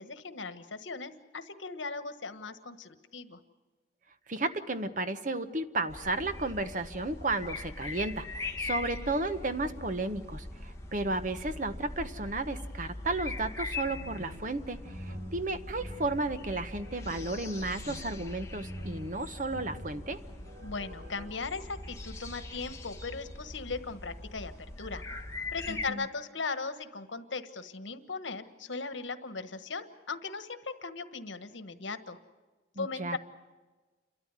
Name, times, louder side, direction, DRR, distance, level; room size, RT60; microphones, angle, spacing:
voice 1, 0.0-3.4 20.6-24.5 24.8-25.0 25.5-32.2 32.8-33.2, left 4 dB, 85° left, 10 dB, 1.4 m, -38 dB
voice 2, 4.3-20.2 25.7-26.1 32.8-33.2, right 2 dB, 45° right, 10 dB, 1.0 m, -33 dB
sound 1, 5.9-25.9, left 2 dB, 15° left, 1.6 m, -42 dB
sound 2, 13.9-21.3, equal, 70° right, 4.1 m, -47 dB
29.0 x 13.0 x 9.8 m, 1.3 s
head